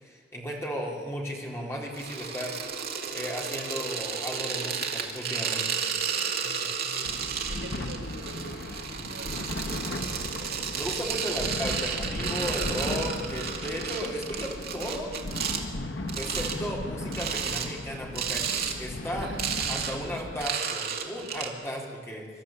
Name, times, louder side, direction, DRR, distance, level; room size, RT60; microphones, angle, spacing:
voice 1, 0.0-2.6 3.1-5.8 10.8-15.1 16.2-19.3 19.7-22.3, equal, 15° left, -2 dB, 3.9 m, -35 dB
sound 1, 1.9-15.6 16.1-16.6 17.1-17.7 18.1-18.8 19.1-21.5, right 7 dB, 55° right, 2.3 m, -32 dB
voice 2, 6.4-8.6 8.9-9.3 19.1-19.4, right 2 dB, 75° right, 0 dB, 5.7 m, -44 dB
sound 2, 7.0-20.5, left 1 dB, 75° left, 1.3 m, -36 dB
25.0 x 13.0 x 8.7 m, 1.5 s
head